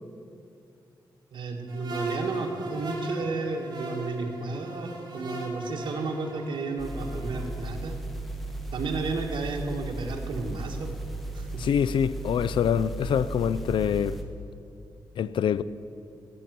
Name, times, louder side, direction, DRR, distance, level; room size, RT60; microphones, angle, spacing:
voice 1, 1.3-8.0 8.7-10.9 11.3-11.6, right 3 dB, 70° right, 1.6 m, -32 dB
sound 1, 1.7-7.5, right 2 dB, 55° right, 3.9 m, -37 dB
sound 2, 6.8-14.2, right 2 dB, ahead, 1.4 m, -36 dB
voice 2, 11.6-14.2 15.2-15.6, left 8 dB, 85° left, 0.4 m, -25 dB
16.0 x 7.0 x 9.3 m
wide cardioid pair, 125°, 8 cm